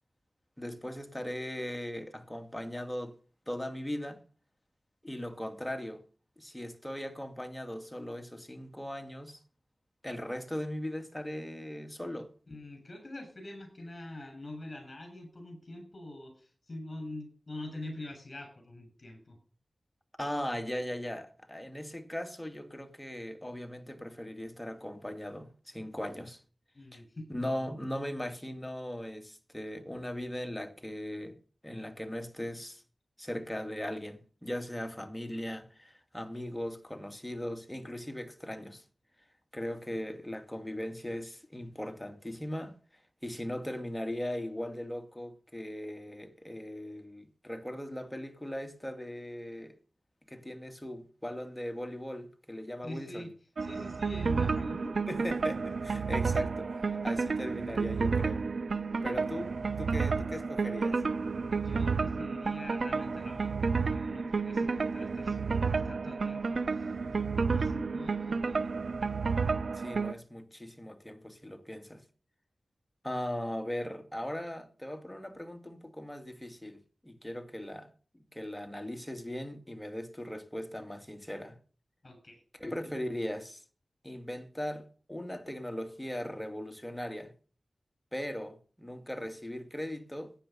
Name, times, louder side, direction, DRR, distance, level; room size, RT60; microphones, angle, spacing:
voice 1, 0.6-3.1 3.5-4.2 5.0-6.0 6.4-9.4 10.0-12.3 20.2-26.4 26.9-27.0 27.3-31.4 31.6-32.8 33.2-38.8 39.5-42.8 43.2-49.7 50.3-53.2 55.1-58.4 59.0-61.0 69.7-72.0 73.0-81.6 82.5-83.6 84.0-87.3 88.1-90.3, left 1 dB, 10° left, 2.4 m, -39 dB
voice 2, 12.5-19.4 26.7-27.3 52.8-53.3 53.6-54.9 56.9-57.0 61.5-66.9 67.5-68.7 82.0-82.4, left 1 dB, 45° left, 7.3 m, -45 dB
sound 1, 53.6-70.1, right 4 dB, 75° right, 0.7 m, -31 dB
15.0 x 10.5 x 5.6 m
cardioid pair, 45°, 0 cm